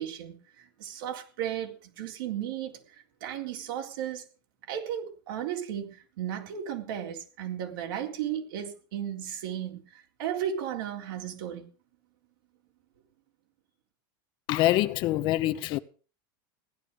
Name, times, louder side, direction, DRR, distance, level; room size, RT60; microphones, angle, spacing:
voice 1, 0.0-2.8 3.2-4.2 4.7-11.7, right 10 dB, 80° right, 3.8 m, -35 dB
voice 2, 14.5-15.8, left 15 dB, 45° left, 0.8 m, -25 dB
16.0 x 11.0 x 5.1 m
supercardioid pair, 155°, 11 cm